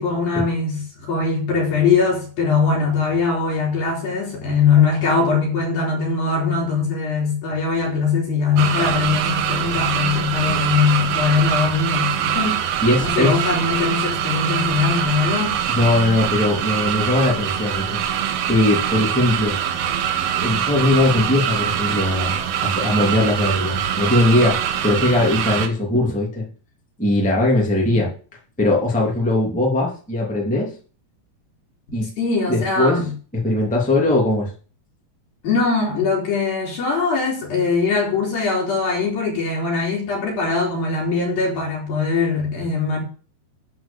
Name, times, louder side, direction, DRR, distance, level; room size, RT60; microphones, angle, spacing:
voice 1, 0.0-12.6 13.0-15.6 27.8-28.0 32.2-33.1 35.4-43.0, left 4 dB, 65° left, 5.3 m, -21 dB
sound 1, 8.6-25.7, right 9 dB, 75° right, 2.8 m, -23 dB
voice 2, 12.8-13.5 15.7-18.0 18.5-19.6 20.3-26.5 27.0-28.1 28.6-30.7 31.9-32.1 32.5-33.0 33.4-34.5, left 2 dB, 5° left, 1.9 m, -20 dB
11.5 x 4.8 x 7.2 m
omnidirectional pair, 4.6 m